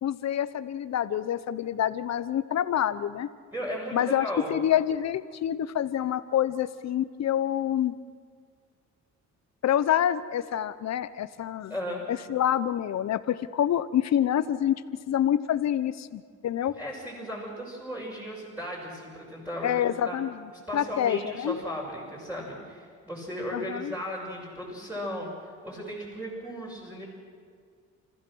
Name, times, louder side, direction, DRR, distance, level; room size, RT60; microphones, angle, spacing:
voice 1, 0.0-3.3 3.9-7.9 9.6-11.7 12.1-14.8 15.1-16.7 19.6-20.4 20.7-21.6 23.5-23.9, left 10 dB, 60° left, 13 dB, 0.9 m, -27 dB
voice 2, 3.5-4.6 11.7-12.0 16.7-20.2 20.7-27.0, equal, 5° right, -5 dB, 6.2 m, -36 dB
30.0 x 15.0 x 6.3 m, 2.1 s
cardioid pair, 90°, 30 cm